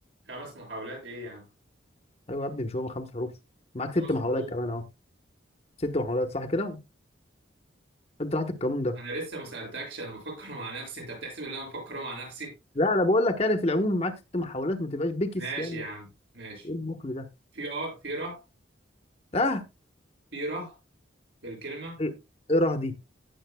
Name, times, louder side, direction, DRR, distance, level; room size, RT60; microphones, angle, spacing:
voice 1, 0.3-1.5 3.9-4.5 8.9-12.5 15.3-16.7 17.5-18.4 20.3-20.7 21.4-22.0, right 2 dB, 70° right, 6.8 m, -37 dB
voice 2, 2.3-3.3 3.7-4.8 5.8-6.8 8.2-9.0 12.8-15.8 16.6-17.3 19.3-19.6 22.0-22.1 22.5-22.9, left 1 dB, 35° left, 1.1 m, -27 dB
17.0 x 7.2 x 2.2 m
head